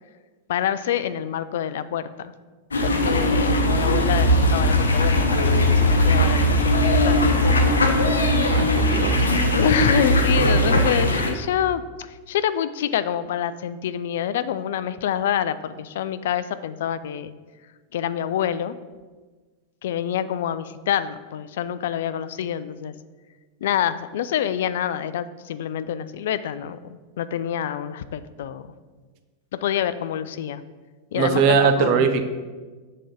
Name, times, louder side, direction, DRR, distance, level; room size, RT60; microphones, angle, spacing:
voice 1, 0.5-2.3 2.8-8.0 9.5-17.3 17.9-18.7 19.8-22.9 23.6-28.7 29.5-30.6 31.1-32.1, left 10 dB, 55° left, 14 dB, 0.3 m, -27 dB
sound 1, 2.7-11.3, left 1 dB, 75° left, 0.7 m, -19 dB
voice 2, 8.5-9.3 10.5-10.6 31.2-32.3, right 6 dB, 45° right, 8 dB, 0.6 m, -21 dB
7.5 x 4.3 x 5.0 m, 1.4 s
figure-of-eight pair, 90°, 0 cm